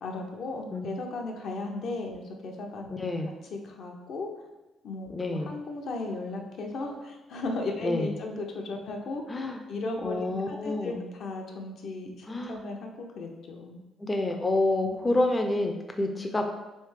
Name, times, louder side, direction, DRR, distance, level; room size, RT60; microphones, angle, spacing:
voice 1, 0.0-2.9 3.5-4.3 4.8-9.2 9.7-13.8 15.0-15.2, left 2 dB, 70° left, 2 dB, 0.6 m, -36 dB
voice 2, 2.9-3.3 5.1-5.5 7.8-8.1 9.3-9.6 10.0-11.0 12.3-12.6 14.0-16.4, left 2 dB, 20° left, 4 dB, 0.3 m, -28 dB
3.2 x 3.1 x 3.2 m, 1.1 s
cardioid pair, 90°, 0 cm